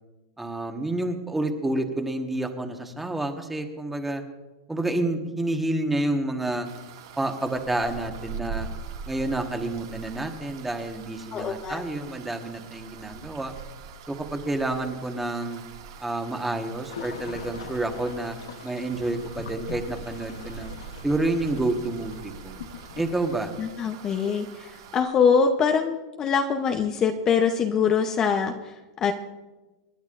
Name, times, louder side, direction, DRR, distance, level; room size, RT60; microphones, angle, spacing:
voice 1, 0.4-4.2 4.7-6.7 7.2-8.7 9.1-13.5 14.1-15.6 16.0-18.4 18.6-20.7 21.0-22.5 23.0-23.5, right 2 dB, 5° right, 4 dB, 1.4 m, -29 dB
sound 1, 6.6-25.0, right 6 dB, 70° right, 2.1 m, -42 dB
voice 2, 11.3-11.8 23.6-29.1, left 6 dB, 25° left, 5 dB, 0.8 m, -24 dB
sound 2, 16.9-23.4, left 7 dB, 85° left, 1.0 m, -42 dB
28.0 x 10.5 x 2.6 m, 1.2 s
supercardioid pair, 145°, 2 cm